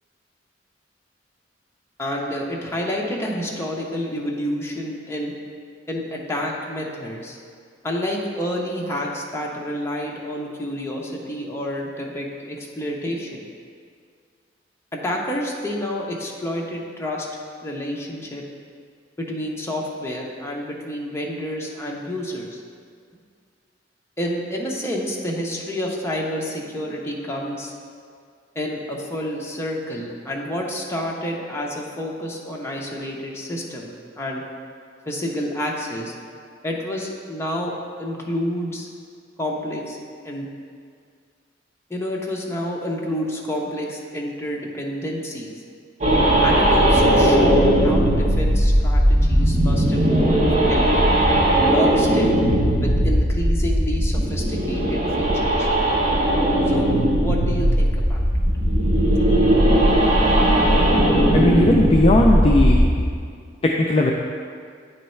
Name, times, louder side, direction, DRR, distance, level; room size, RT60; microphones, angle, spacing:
voice 1, 2.0-5.3 5.9-7.4 7.8-13.4 14.9-17.3 17.6-18.4 19.2-22.6 24.2-27.7 28.5-34.4 35.1-36.1 36.6-38.9 39.4-40.0 40.2-40.5 41.9-45.5 46.4-50.9 51.6-52.3 52.8-55.7 56.7-56.9 57.2-58.2 58.8-59.5, equal, 15° left, -2 dB, 0.8 m, -29 dB
sound 1, 46.0-62.8, right 1 dB, 40° right, 1.0 m, -18 dB
voice 2, 61.3-63.1 63.6-64.1, left 1 dB, 35° left, -1 dB, 0.4 m, -18 dB
9.1 x 3.1 x 4.4 m, 2.1 s
head